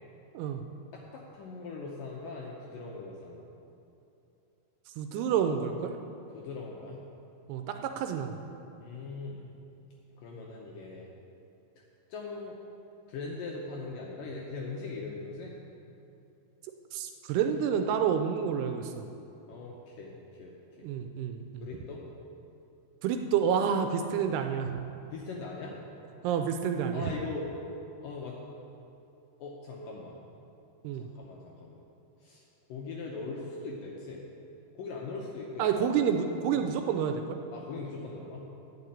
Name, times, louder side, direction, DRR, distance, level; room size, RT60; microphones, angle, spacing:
voice 1, 0.9-3.4 6.3-7.0 8.8-9.4 10.2-11.1 12.1-12.6 13.1-15.6 19.5-20.9 21.6-22.1 25.1-25.8 26.9-27.5 28.0-28.4 29.4-30.2 30.9-31.8 32.2-32.4 32.7-34.3 34.8-35.7 37.5-38.5, left 3 dB, 75° left, -2 dB, 2.1 m, -40 dB
voice 2, 5.0-5.9 7.5-8.4 16.9-19.1 20.8-21.7 23.0-24.7 26.2-27.1 30.8-31.1 35.6-37.4, right 7 dB, 80° right, 6 dB, 2.5 m, -29 dB
9.7 x 6.7 x 8.7 m, 2.8 s
omnidirectional pair, 4.9 m